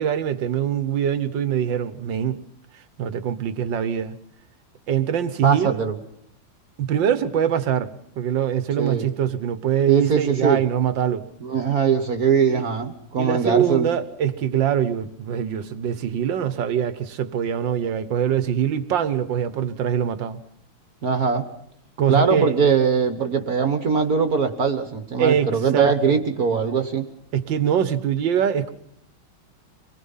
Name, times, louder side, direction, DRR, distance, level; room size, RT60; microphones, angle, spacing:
voice 1, 0.0-2.4 3.0-4.2 4.9-5.9 6.8-11.3 12.5-12.7 13.2-20.4 22.0-22.6 25.2-26.2 27.3-28.7, right 9 dB, 65° right, 1.8 m, -23 dB
voice 2, 5.4-5.9 8.8-9.1 9.9-10.6 11.4-13.9 21.0-21.4 22.1-27.1, right 6 dB, 50° right, 1.7 m, -21 dB
25.0 x 20.0 x 5.6 m
omnidirectional pair, 2.3 m